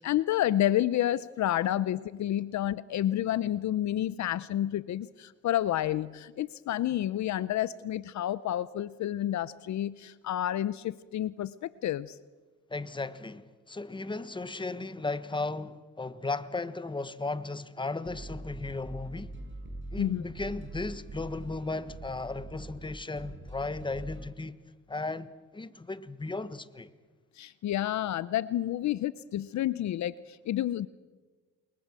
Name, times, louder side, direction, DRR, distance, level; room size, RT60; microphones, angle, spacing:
voice 1, 0.0-12.2 20.0-20.2 27.4-30.9, left 12 dB, 65° left, 0.7 m, -30 dB
voice 2, 12.7-19.3 19.9-24.6 24.9-26.9, left 3 dB, 15° left, 1.4 m, -36 dB
sound 1, 18.0-24.3, right 2 dB, 40° right, 5.3 m, -43 dB
29.0 x 22.5 x 7.6 m
cardioid pair, 90°, 30 cm